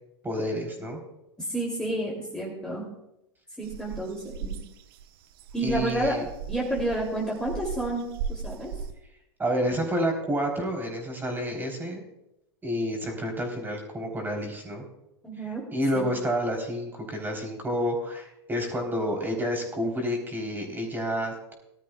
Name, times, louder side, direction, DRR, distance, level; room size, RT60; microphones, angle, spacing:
voice 1, 0.2-1.0 5.6-6.2 9.4-12.0 12.6-14.8 15.7-21.5, equal, 15° right, 2 dB, 3.4 m, -29 dB
voice 2, 1.5-2.9 3.6-4.5 5.5-6.1 6.5-8.7 15.2-15.6 15.9-16.1, right 1 dB, 5° left, -4 dB, 2.7 m, -30 dB
sound 1, 3.6-8.9, right 6 dB, 60° right, 0.9 m, -37 dB
19.5 x 12.5 x 2.3 m, 0.85 s
hypercardioid pair, 95°, 14 cm